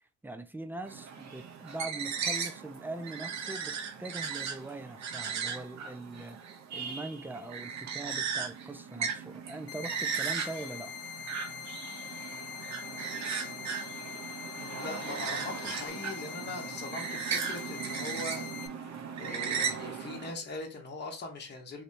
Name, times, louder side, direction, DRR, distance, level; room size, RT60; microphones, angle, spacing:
voice 1, 0.2-6.4 6.7-10.9, right 2 dB, 5° right, 0.4 m, -42 dB
sound 1, 0.9-20.3, right 6 dB, 65° right, 0.8 m, -37 dB
sound 2, 9.7-18.7, left 9 dB, 55° left, 0.5 m, -43 dB
voice 2, 14.6-21.8, left 2 dB, 35° left, 1.0 m, -41 dB
3.2 x 2.8 x 2.6 m
cardioid pair, 90°, 30 cm